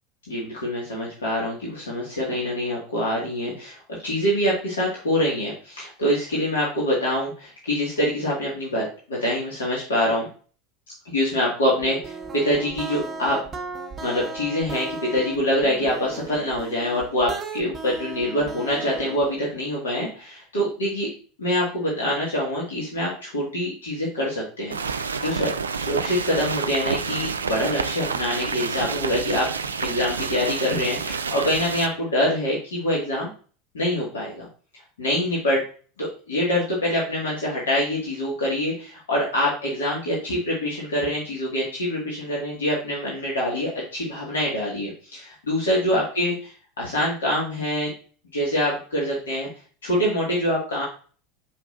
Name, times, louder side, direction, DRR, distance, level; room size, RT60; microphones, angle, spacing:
voice 1, 0.3-8.8 9.1-10.3 11.1-13.4 14.0-21.1 21.4-25.5 25.8-29.5 29.8-33.3 33.7-34.5 35.0-35.6 36.0-46.3 46.8-47.9 48.3-49.5 49.8-50.8, left 1 dB, 70° left, -5 dB, 1.9 m, -25 dB
sound 1, 11.8-19.4, right 3 dB, 25° right, 1.0 m, -36 dB
sound 2, 24.7-31.9, right 5 dB, 75° right, 0.4 m, -29 dB
7.0 x 5.2 x 2.6 m, 0.40 s
figure-of-eight pair, 75°, 0 cm